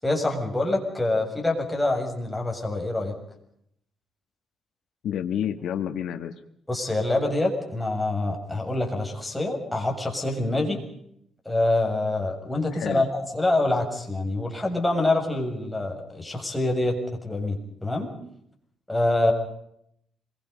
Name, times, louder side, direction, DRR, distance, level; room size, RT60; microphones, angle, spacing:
voice 1, 0.0-3.1 6.7-10.8 11.5-18.1 18.9-19.3, left 2 dB, 10° left, 1 dB, 7.0 m, -26 dB
voice 2, 5.0-6.3 12.7-13.0, left 9 dB, 80° left, 7 dB, 1.7 m, -29 dB
27.0 x 23.0 x 5.3 m, 0.73 s
cardioid pair, 115°, 0 cm